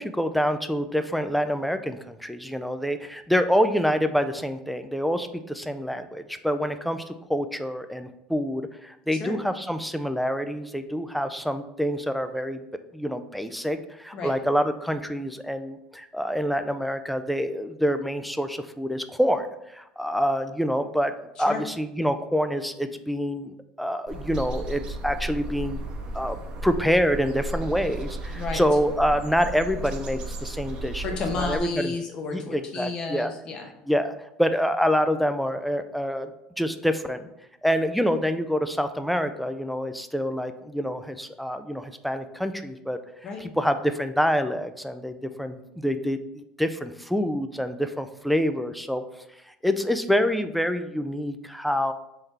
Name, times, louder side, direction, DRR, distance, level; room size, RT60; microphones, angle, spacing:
voice 1, 0.0-12.6 12.9-21.1 21.4-25.8 26.1-26.4 26.6-31.0 31.4-31.9 32.3-33.3 33.9-36.3 36.6-37.3 37.6-43.0 43.4-49.0 49.6-51.9, equal, ahead, 9 dB, 0.3 m, -26 dB
sound 1, 24.1-31.6, right 2 dB, 50° right, 0.8 m, -34 dB
voice 2, 31.0-33.7 43.2-43.4, left 4 dB, 40° left, 2 dB, 0.9 m, -32 dB
3.8 x 3.3 x 4.1 m, 0.86 s
supercardioid pair, 115°, 2 cm